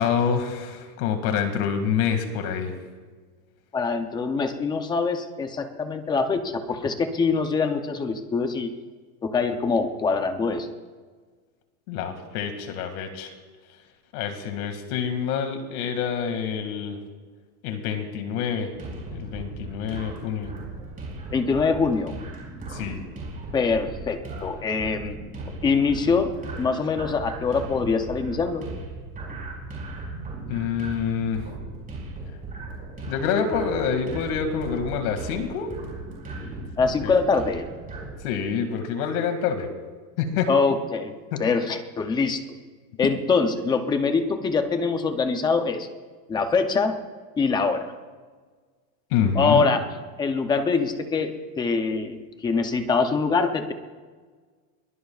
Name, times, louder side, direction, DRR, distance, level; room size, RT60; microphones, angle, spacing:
voice 1, 0.0-2.7 11.9-13.3 14.1-17.0 17.6-18.7 19.1-20.5 22.7-23.0 30.5-31.4 33.1-35.7 37.0-37.1 38.2-39.7 40.2-40.5 41.3-41.4 49.1-49.7, left 7 dB, 60° left, 6 dB, 2.3 m, -27 dB
voice 2, 3.7-8.7 9.2-10.7 21.3-22.1 23.5-25.2 25.6-28.7 36.8-37.7 40.5-41.1 41.4-42.4 43.0-45.9 46.3-47.0 47.4-47.9 49.4-49.9 50.2-53.7, left 4 dB, 10° left, 7 dB, 0.5 m, -24 dB
sound 1, 18.7-38.1, right 2 dB, 15° right, 5.5 m, -37 dB
22.5 x 22.0 x 2.4 m, 1.5 s
supercardioid pair, 165°, 49 cm